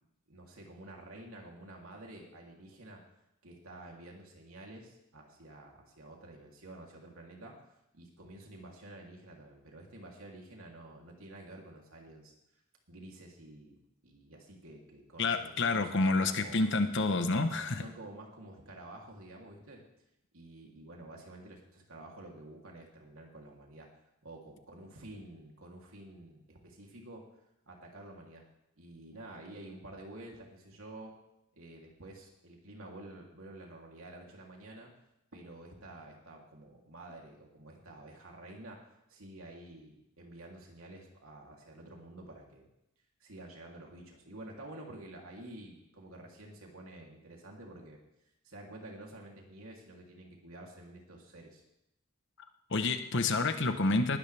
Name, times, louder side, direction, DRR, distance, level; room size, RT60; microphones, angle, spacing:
voice 1, 0.3-3.0 3.4-7.6 7.9-12.3 12.9-13.8 14.0-16.6 17.4-19.8 20.3-23.9 24.2-27.3 27.7-28.5 28.8-31.1 31.5-34.9 35.3-38.8 39.1-42.7 43.2-48.0 48.4-51.6, right 1 dB, 75° right, 0 dB, 3.1 m, -50 dB
voice 2, 15.2-17.8 52.7-54.2, left 3 dB, 60° left, 8 dB, 1.0 m, -28 dB
19.5 x 12.5 x 3.4 m, 0.84 s
head